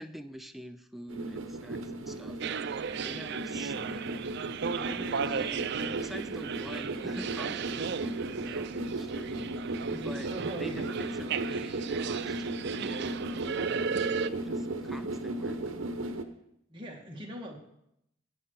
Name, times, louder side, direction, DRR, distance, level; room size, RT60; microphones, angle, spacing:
voice 1, 0.0-4.1 4.7-10.3 10.6-15.6, equal, ahead, 8 dB, 0.5 m, -45 dB
sound 1, 1.1-16.2, right 2 dB, 70° right, 1.0 m, -36 dB
sound 2, 2.4-14.3, right 6 dB, 55° right, 0.4 m, -36 dB
voice 2, 9.9-11.2 16.7-17.6, right 1 dB, 25° right, -1 dB, 2.0 m, -42 dB
14.5 x 9.2 x 4.8 m, 0.78 s
head